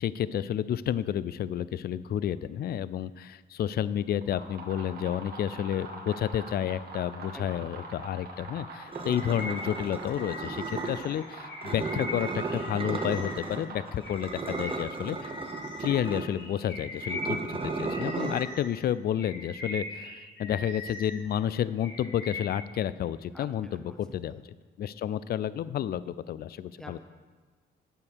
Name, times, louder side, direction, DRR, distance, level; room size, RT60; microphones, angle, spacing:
voice 1, 0.0-15.3 15.8-24.4 24.8-27.0, left 10 dB, 50° left, 17 dB, 0.4 m, -31 dB
sound 1, 4.1-14.4, right 2 dB, 50° right, 1.7 m, -44 dB
voice 2, 7.3-7.7 14.6-15.1 23.3-24.0 24.3-24.4 26.8-27.0, left 1 dB, 5° left, 5 dB, 1.1 m, -48 dB
sound 2, 8.9-11.1 11.6-13.7 14.0-18.4, right 3 dB, 25° right, 1.0 m, -35 dB
Bird vocalization bird call bird song, 9.1-13.6 14.0-18.7 19.1-21.2 21.6-22.6, left 1 dB, 70° left, 2.1 m, -41 dB
8.8 x 6.9 x 6.2 m, 1.4 s
cardioid pair, 90°, 20 cm